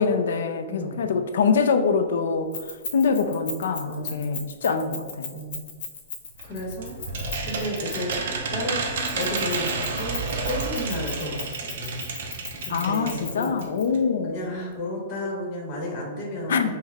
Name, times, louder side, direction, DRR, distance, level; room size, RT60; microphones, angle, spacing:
voice 1, 0.0-5.3 12.7-14.4 16.5-16.7, left 5 dB, 85° left, 8 dB, 0.4 m, -24 dB
voice 2, 0.7-1.1 3.9-4.3 5.3-5.6 6.4-7.0 7.4-8.1 8.5-8.8 9.1-9.7 10.0-12.1 12.6-13.6 14.3-16.7, equal, 30° left, -2 dB, 1.0 m, -32 dB
Keys jangling, 2.5-8.2 9.0-13.8, left 5 dB, 60° left, 0.9 m, -36 dB
sound 1, 6.4-13.3 13.6-13.7 13.9-14.0, right 4 dB, 60° right, 0.7 m, -30 dB
5.4 x 2.1 x 3.5 m, 1.5 s
supercardioid pair, 170°, 0 cm